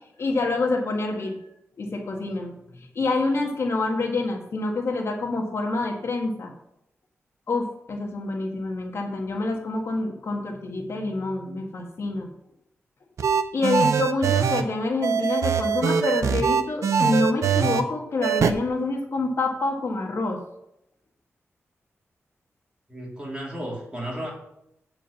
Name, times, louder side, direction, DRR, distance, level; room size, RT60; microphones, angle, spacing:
voice 1, 0.2-1.4 1.8-6.5 7.5-12.3 13.5-20.4, left 3 dB, 60° left, 1 dB, 1.6 m, -27 dB
sound 1, 13.2-14.6 15.0-17.8 18.2-18.5, right 7 dB, 85° right, 0.6 m, -22 dB
voice 2, 22.9-24.3, right 1 dB, 20° right, -4 dB, 3.7 m, -33 dB
8.7 x 4.9 x 7.1 m, 0.80 s
wide cardioid pair, 90°, 5 cm